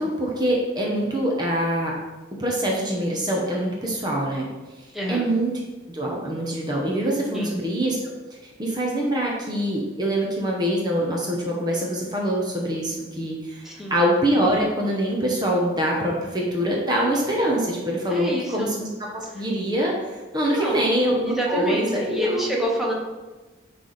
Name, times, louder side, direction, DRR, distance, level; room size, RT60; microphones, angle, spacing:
voice 1, 0.0-2.0 2.4-4.5 5.1-8.2 8.4-22.6, right 1 dB, 25° right, -2 dB, 1.0 m, -24 dB
voice 2, 4.9-5.3 7.3-7.5 13.6-14.0 18.1-18.8 19.4-19.5 20.5-20.9 21.2-22.9, equal, ahead, -3 dB, 1.1 m, -28 dB
9.8 x 3.4 x 4.1 m, 1.2 s
head